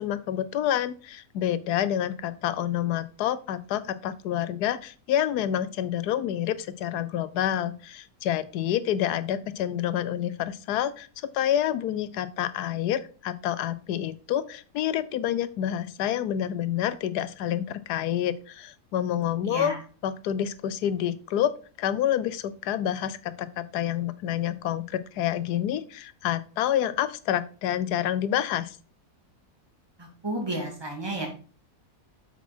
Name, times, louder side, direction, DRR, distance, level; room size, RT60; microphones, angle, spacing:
voice 1, 0.0-11.1 11.3-19.7 20.0-21.5 21.8-28.8, left 11 dB, 90° left, 15 dB, 1.2 m, -28 dB
voice 2, 19.4-19.8 30.0-31.3, right 1 dB, 15° right, 1 dB, 2.3 m, -32 dB
8.3 x 5.9 x 4.3 m, 0.39 s
omnidirectional pair, 1.6 m